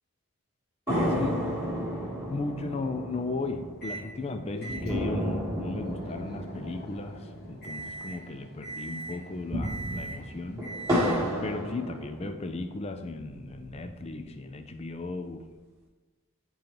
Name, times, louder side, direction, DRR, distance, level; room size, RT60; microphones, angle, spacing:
voice 1, 0.9-1.5 2.3-10.6 11.4-15.4, left 2 dB, 30° left, 7 dB, 0.4 m, -36 dB
sound 1, 0.9-8.5 8.7-8.8 9.3-12.6 13.1-14.1, equal, 15° right, 1.4 m, -32 dB
Microwave oven, 3.8-4.1 4.6-11.4, right 2 dB, 45° left, 1.7 m, -42 dB
10.5 x 3.8 x 3.0 m, 1.3 s
head